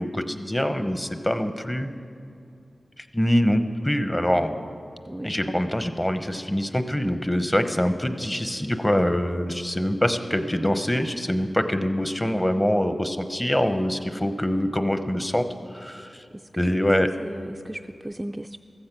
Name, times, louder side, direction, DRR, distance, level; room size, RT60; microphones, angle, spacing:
voice 1, 0.0-1.9 3.0-4.5 5.2-15.5 15.7-16.2 16.6-17.1, equal, 15° left, 9 dB, 0.9 m, -24 dB
voice 2, 5.1-5.6 16.3-16.7 17.0-18.6, right 1 dB, 15° right, 6 dB, 0.3 m, -37 dB
15.0 x 15.0 x 6.0 m, 2.4 s
wide cardioid pair, 100°, 0 cm